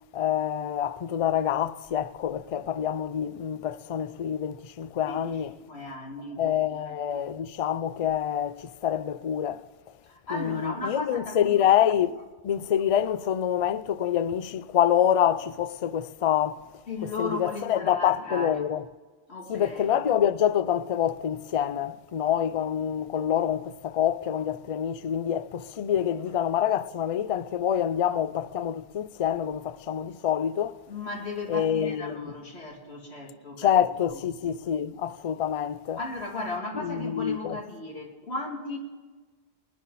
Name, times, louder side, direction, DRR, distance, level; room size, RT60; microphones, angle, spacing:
voice 1, 0.1-5.5 6.4-9.7 10.3-12.2 12.4-16.6 17.0-18.8 19.5-30.8 31.5-32.3 33.6-36.0 36.8-37.6, left 9 dB, 45° left, 0.4 m, -26 dB
voice 2, 5.0-6.4 6.8-7.2 10.1-11.5 16.9-18.7 19.3-20.1 30.9-33.8 34.1-34.2 36.0-38.8, left 2 dB, 75° left, 3.0 m, -36 dB
23.5 x 10.0 x 4.1 m
omnidirectional pair, 1.1 m